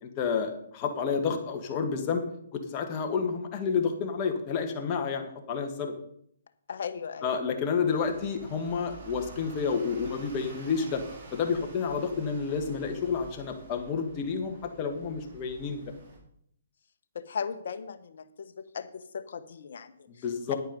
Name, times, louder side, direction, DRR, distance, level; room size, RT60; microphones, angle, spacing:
voice 1, 0.0-2.2 2.5-5.9 7.2-11.0 11.3-15.8 20.1-20.6, left 5 dB, 30° left, 4 dB, 1.9 m, -30 dB
voice 2, 6.7-7.4 17.1-20.5, left 6 dB, 65° left, 10 dB, 1.1 m, -38 dB
sound 1, 7.9-16.2, right 3 dB, 50° right, 4.6 m, -49 dB
10.5 x 8.9 x 5.5 m, 0.69 s
hypercardioid pair, 145°, 0 cm